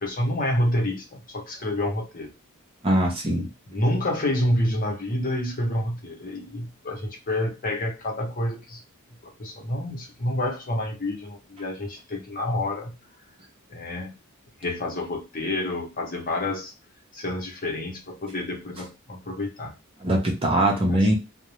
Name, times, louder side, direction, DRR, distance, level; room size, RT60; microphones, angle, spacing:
voice 1, 0.0-2.3 3.7-8.8 9.2-13.0 13.7-14.1 14.6-16.7 17.1-19.7 20.0-20.2 20.9-21.1, left 1 dB, 40° left, 1 dB, 0.8 m, -28 dB
voice 2, 2.8-3.5 20.0-21.1, right 1 dB, 25° right, 0 dB, 0.7 m, -22 dB
2.5 x 2.0 x 3.0 m, 0.26 s
head